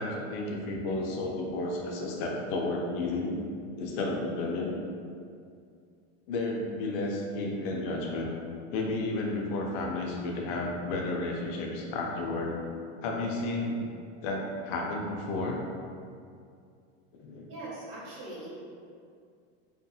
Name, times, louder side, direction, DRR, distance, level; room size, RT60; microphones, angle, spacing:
voice 1, 0.0-3.3 3.8-4.7 6.3-8.3 8.7-12.6 13.0-13.8 14.2-15.6 17.1-17.5, left 2 dB, 65° left, 0 dB, 0.5 m, -32 dB
voice 2, 17.5-18.5, right 2 dB, 65° right, -7 dB, 1.2 m, -41 dB
2.7 x 2.5 x 2.3 m, 2.3 s
supercardioid pair, 130°, 32 cm